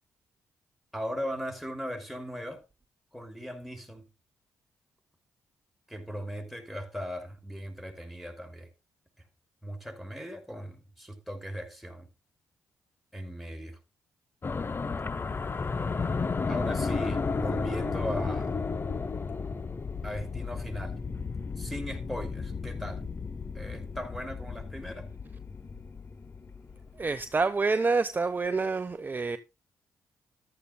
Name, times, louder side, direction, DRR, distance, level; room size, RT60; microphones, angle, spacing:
voice 1, 0.9-2.6 3.1-4.0 5.9-8.7 9.6-12.1 13.1-13.8 16.5-18.5 20.0-21.0 21.6-23.1 23.5-25.1, equal, ahead, 5.6 m, -38 dB
sound 1, 14.4-27.0, left 4 dB, 35° left, 0.8 m, -33 dB
voice 2, 26.9-29.4, right 4 dB, 30° right, 0.9 m, -27 dB
14.0 x 12.5 x 2.2 m
supercardioid pair, 65°, 6 cm